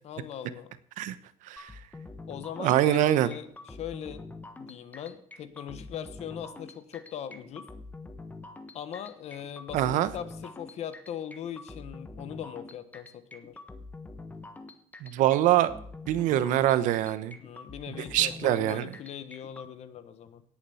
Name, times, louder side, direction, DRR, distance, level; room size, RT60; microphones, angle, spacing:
voice 1, 0.0-0.7 2.3-4.3 4.6-7.7 8.7-13.6 17.4-20.4, left 9 dB, 60° left, 13 dB, 1.3 m, -40 dB
sound 1, 1.6-19.7, left 3 dB, 15° left, 1.3 m, -45 dB
voice 2, 2.6-3.3 9.7-10.1 15.0-15.7 16.1-17.4 18.1-18.9, right 12 dB, 85° right, 14 dB, 1.1 m, -24 dB
17.5 x 7.4 x 7.1 m, 0.62 s
cardioid pair, 140°, 13 cm